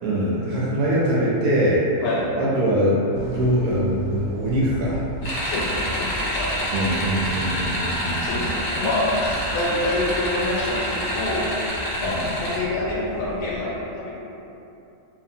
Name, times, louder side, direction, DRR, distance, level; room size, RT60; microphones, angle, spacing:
voice 1, 0.0-1.8 2.4-5.0 6.7-8.5 12.0-12.3, right 1 dB, 75° right, -6 dB, 1.0 m, -23 dB
voice 2, 2.0-2.3 5.5-6.9 8.2-11.5 12.0-14.2, left 2 dB, 80° left, -4 dB, 1.1 m, -27 dB
sound 1, 3.1-13.6, equal, ahead, 0.6 m, -37 dB
sound 2, 5.2-12.6, equal, 60° left, 0.5 m, -27 dB
2.6 x 2.4 x 2.6 m, 2.8 s
omnidirectional pair, 1.6 m